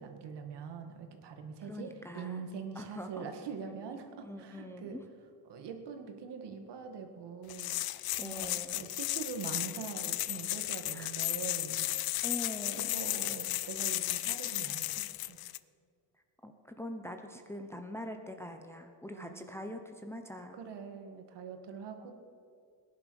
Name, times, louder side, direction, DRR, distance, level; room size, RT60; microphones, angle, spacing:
voice 1, 0.0-5.0 5.5-7.8 8.2-12.1 12.7-15.4 19.1-19.5 20.5-22.1, right 6 dB, 65° right, 5 dB, 1.9 m, -43 dB
voice 2, 1.7-2.4 2.7-3.3 4.0-5.0 8.2-8.8 10.9-11.1 12.2-13.1 16.4-20.6 22.0-22.1, left 1 dB, 5° left, 4 dB, 0.8 m, -43 dB
sound 1, 7.5-15.6, left 16 dB, 55° left, 0.5 m, -34 dB
19.0 x 10.5 x 6.4 m, 2.3 s
cardioid pair, 150°, 44 cm